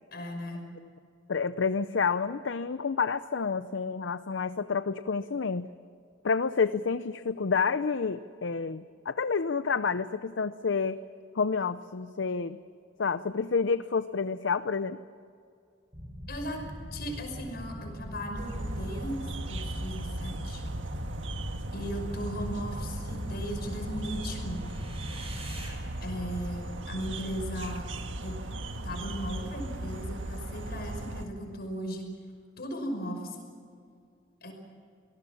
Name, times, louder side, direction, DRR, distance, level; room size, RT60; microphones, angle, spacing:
voice 1, 0.1-0.7 16.3-16.6 16.9-19.2 19.5-20.6 21.7-24.7 26.0-27.9 28.2-28.4 28.8-32.1 32.6-33.5 34.4-34.5, equal, 55° left, 3 dB, 5.8 m, -37 dB
voice 2, 1.3-5.7 6.2-11.0 11.3-12.6 13.0-15.0, left 5 dB, 70° left, 12 dB, 0.6 m, -29 dB
sound 1, 15.9-25.7, equal, 30° right, 6.9 m, -41 dB
sound 2, 18.4-31.3, right 1 dB, 85° right, 1.6 m, -37 dB
26.0 x 19.5 x 7.2 m, 2.3 s
head